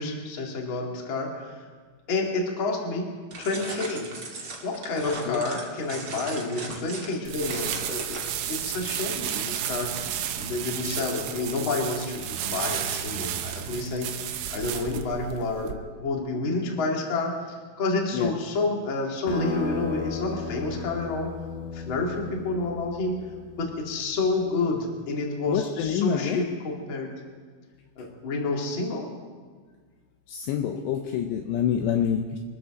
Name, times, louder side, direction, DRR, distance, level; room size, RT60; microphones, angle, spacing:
voice 1, 0.0-1.7 2.1-3.1 3.4-4.1 4.3-8.2 8.5-9.9 10.3-21.3 21.7-23.2 23.6-27.1 28.0-29.1, left 3 dB, 40° left, -1 dB, 1.9 m, -29 dB
sound 1, 3.3-8.6, right 3 dB, 45° right, 1.6 m, -38 dB
sound 2, 7.2-15.7, right 10 dB, 75° right, 2.7 m, -32 dB
sound 3, 19.3-24.4, left 4 dB, 60° left, 2.2 m, -35 dB
voice 2, 25.5-26.4 30.3-32.4, left 9 dB, 80° left, 4 dB, 2.7 m, -27 dB
26.0 x 14.0 x 3.8 m, 1.5 s
omnidirectional pair, 5.7 m